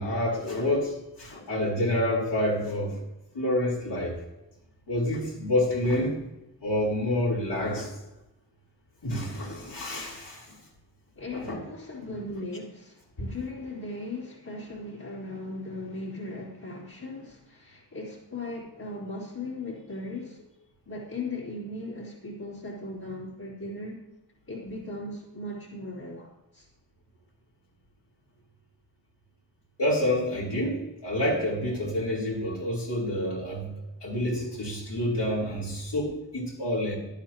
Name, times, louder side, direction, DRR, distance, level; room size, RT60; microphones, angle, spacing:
voice 1, 0.0-3.0 3.3-4.2 4.9-6.2 6.6-7.9 9.0-10.5 11.3-11.6 29.8-33.7 34.0-37.0, left 1 dB, 70° left, -5 dB, 4.3 m, -28 dB
voice 2, 11.2-20.4 20.9-24.0 24.5-26.7, left 2 dB, 55° left, -8 dB, 3.3 m, -38 dB
17.5 x 11.5 x 3.0 m, 0.95 s
wide cardioid pair, 65°, 43 cm